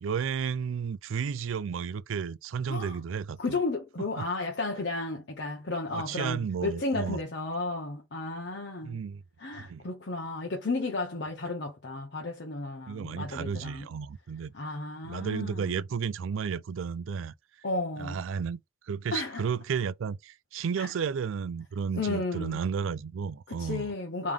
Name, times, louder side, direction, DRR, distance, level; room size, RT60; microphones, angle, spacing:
voice 1, 0.0-3.6 4.2-4.3 5.9-7.2 8.8-9.2 9.6-9.8 12.9-14.5 15.0-17.3 18.0-18.6 18.9-23.9, right 6 dB, 90° right, 0.4 m, -32 dB
voice 2, 3.4-9.0 9.4-13.9 14.5-15.8 17.6-18.2 19.1-19.4 20.8-20.9 22.0-22.6 23.5-24.3, left 3 dB, 60° left, 0.8 m, -33 dB
3.5 x 3.1 x 3.5 m
head